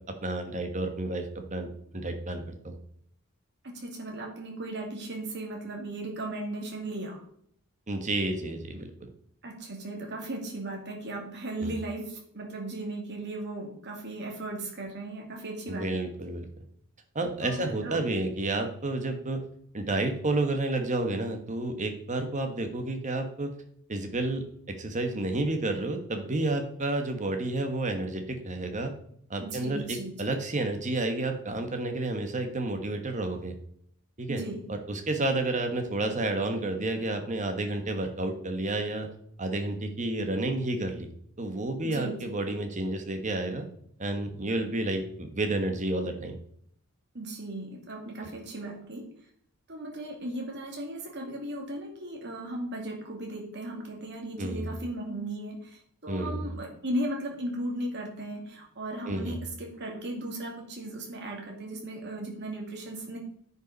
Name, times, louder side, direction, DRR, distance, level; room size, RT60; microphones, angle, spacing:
voice 1, 0.1-1.7 1.9-2.8 7.9-8.9 11.6-11.7 15.7-16.4 17.1-19.4 19.7-23.5 23.9-28.9 29.3-33.6 34.2-34.4 34.7-39.1 39.4-41.1 41.4-43.6 44.0-46.3 54.4-54.7 56.1-56.4 59.0-59.4, right 2 dB, 35° right, 6 dB, 1.3 m, -30 dB
voice 2, 3.6-7.2 9.4-15.9 17.4-18.0 29.4-30.1 34.3-34.6 41.8-42.2 47.1-49.0 49.7-63.2, right 1 dB, 55° right, 0 dB, 2.3 m, -36 dB
9.7 x 5.6 x 4.0 m, 0.66 s
head